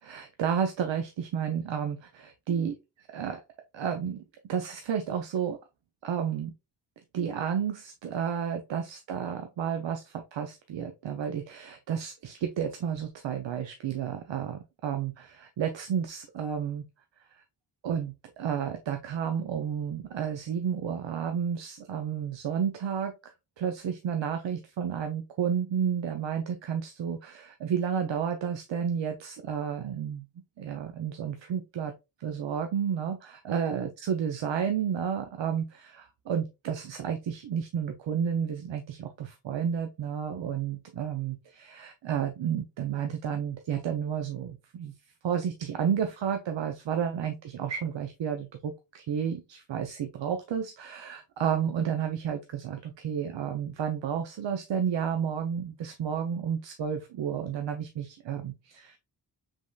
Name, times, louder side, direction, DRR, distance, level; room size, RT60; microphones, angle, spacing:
voice 1, 0.0-2.8 3.1-3.4 3.7-4.2 4.5-5.6 6.0-6.5 7.1-16.8 17.3-17.4 17.8-30.3 30.6-31.9 32.2-44.9 45.2-59.0, right 8 dB, 80° right, 0.6 m, -31 dB
5.2 x 3.6 x 2.3 m
wide cardioid pair, 170°, 44 cm